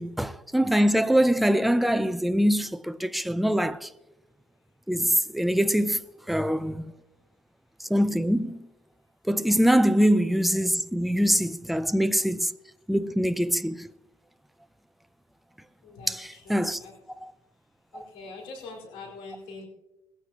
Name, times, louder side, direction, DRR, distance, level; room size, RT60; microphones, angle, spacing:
voice 1, 0.0-3.9 4.9-6.0 6.3-6.9 7.9-8.6 9.3-12.5 12.9-13.9 16.1-16.2 16.5-16.8 17.2-17.3, equal, ahead, 0.5 m, -23 dB
voice 2, 15.8-16.9 17.9-19.7, left 3 dB, 90° left, 4.8 m, -43 dB
21.0 x 15.0 x 2.9 m
cardioid pair, 160°, 9 cm